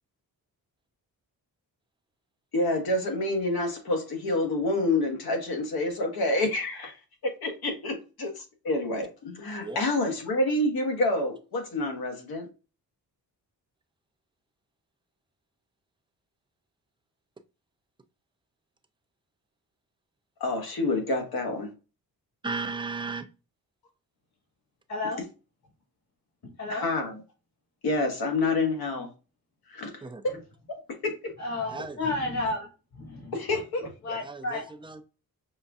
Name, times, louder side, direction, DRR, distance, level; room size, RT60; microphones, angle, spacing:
voice 1, 2.5-6.9 7.2-12.5 20.4-21.7 26.7-27.2 27.8-29.1 29.7-30.4 30.9-31.1 33.3-34.2, left 2 dB, 75° left, 1.3 m, -28 dB
voice 2, 22.4-23.3 30.0-30.2 31.7-32.0 34.2-35.0, right 4 dB, 15° right, 0.4 m, -35 dB
voice 3, 31.4-32.7 32.9-33.3 34.0-34.6, left 2 dB, 45° left, 1.5 m, -31 dB
5.3 x 2.5 x 2.3 m
cardioid pair, 105°, 37 cm